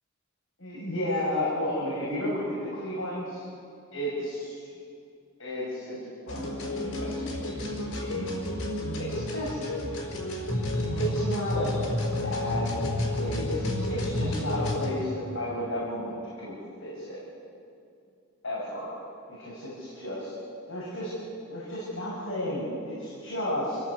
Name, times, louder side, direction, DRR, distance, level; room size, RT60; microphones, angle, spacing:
voice 1, 0.6-3.4 3.9-4.6 5.4-6.0 6.3-8.3 8.9-9.6 11.0-11.7 12.2-17.2 18.4-18.9 19.3-20.3 20.7-21.1 21.5-23.8, left 1 dB, 65° left, -7 dB, 7.0 m, -33 dB
sound 1, 6.3-14.9, left 1 dB, 90° left, 5.5 m, -30 dB
27.0 x 17.0 x 8.3 m, 2.4 s
head